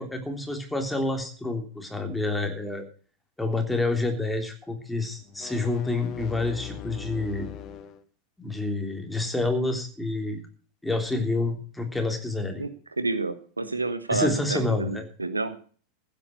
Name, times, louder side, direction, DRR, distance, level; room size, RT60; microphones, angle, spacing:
voice 1, 0.0-2.8 3.4-7.5 8.4-10.4 10.8-12.6 14.1-15.0, left 2 dB, 5° left, 4 dB, 3.4 m, -28 dB
sound 1, 5.2-8.0, left 10 dB, 35° left, 1.3 m, -40 dB
voice 2, 13.0-15.6, right 3 dB, 80° right, 12 dB, 1.3 m, -29 dB
15.5 x 8.9 x 6.4 m, 0.41 s
figure-of-eight pair, 90°, 0 cm